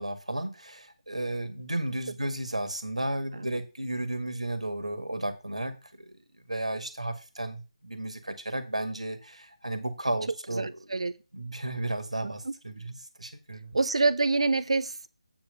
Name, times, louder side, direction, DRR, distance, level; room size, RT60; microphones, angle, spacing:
voice 1, 0.0-6.2 6.5-10.8 11.3-13.8, right 1 dB, 80° right, 8 dB, 1.9 m, -33 dB
voice 2, 10.5-11.1 12.2-12.3 13.7-15.1, right 3 dB, 60° right, 16 dB, 0.8 m, -26 dB
8.7 x 5.2 x 5.7 m, 0.30 s
figure-of-eight pair, 155°, 3 cm